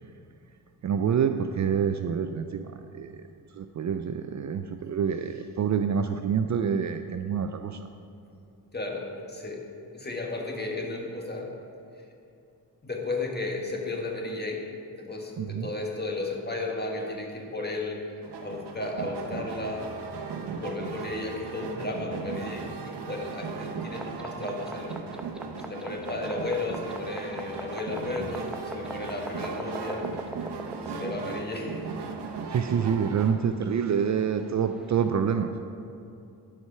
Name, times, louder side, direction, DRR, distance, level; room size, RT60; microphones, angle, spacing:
voice 1, 0.8-3.2 3.5-7.8 15.4-15.7 20.5-20.6 32.5-35.5, right 7 dB, 45° right, 8 dB, 0.4 m, -27 dB
voice 2, 8.7-9.6 9.9-11.5 12.8-14.7 15.0-18.0 18.4-19.9 20.6-25.1 25.6-30.1 30.9-31.8, left 2 dB, 25° left, 0 dB, 1.5 m, -34 dB
sound 1, 18.2-33.3, right 5 dB, 80° right, 0.9 m, -37 dB
sound 2, 23.9-35.1, right 1 dB, ahead, 0.7 m, -44 dB
11.5 x 4.8 x 5.7 m, 2.6 s
cardioid pair, 75°, 40 cm